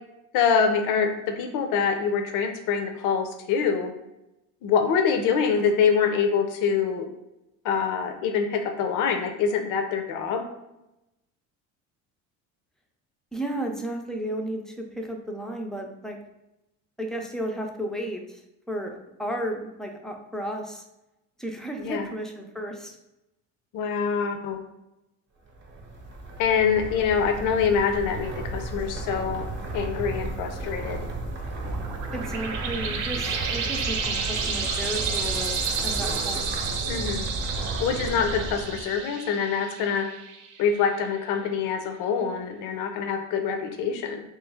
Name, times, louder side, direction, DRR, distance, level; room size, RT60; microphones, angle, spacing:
voice 1, 0.3-3.9 4.6-7.1 7.6-10.4 21.8-22.1 23.7-24.6 26.4-29.5 29.7-31.0 36.9-37.2 37.8-40.1 40.6-44.2, left 6 dB, 70° left, 5 dB, 0.6 m, -25 dB
voice 2, 13.3-16.2 17.0-18.4 18.7-20.8 21.4-23.0 32.1-36.5, right 1 dB, ahead, 2 dB, 0.4 m, -33 dB
sound 1, 25.5-39.0, right 2 dB, 35° right, 0.7 m, -33 dB
sound 2, 31.6-40.7, right 5 dB, 70° right, 0.7 m, -31 dB
3.1 x 3.1 x 3.4 m, 0.91 s
cardioid pair, 125°, 32 cm